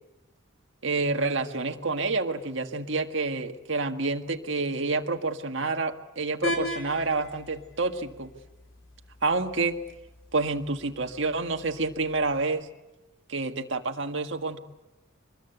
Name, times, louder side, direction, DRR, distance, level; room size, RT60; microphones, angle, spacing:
voice 1, 0.8-8.3 9.2-9.8 10.3-12.7 13.3-14.6, right 3 dB, 60° right, 5 dB, 1.8 m, -28 dB
sound 1, 6.4-12.4, left 1 dB, 70° left, 3.6 m, -39 dB
25.5 x 21.0 x 8.1 m, 1.0 s
head